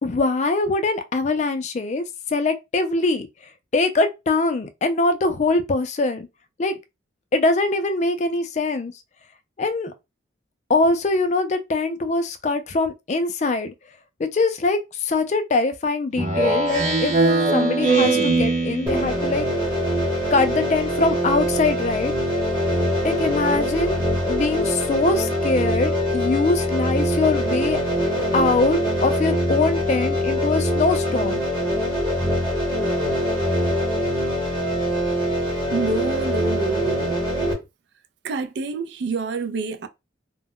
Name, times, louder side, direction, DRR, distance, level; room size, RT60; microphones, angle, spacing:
voice 1, 0.0-2.0 2.3-3.3 3.7-6.3 6.6-6.8 7.3-8.9 9.6-9.9 10.7-13.7 14.2-17.2 17.5-19.5 20.3-22.1 23.0-27.8 28.3-31.4, left 3 dB, 35° left, 0.4 m, -22 dB
Speech synthesizer, 16.2-19.2, right 3 dB, 35° right, 0.7 m, -20 dB
sound 1, 18.9-37.5, equal, 20° right, 1.0 m, -23 dB
voice 2, 35.7-37.5 38.2-39.9, right 4 dB, 60° right, 0.3 m, -27 dB
2.2 x 2.0 x 3.5 m
head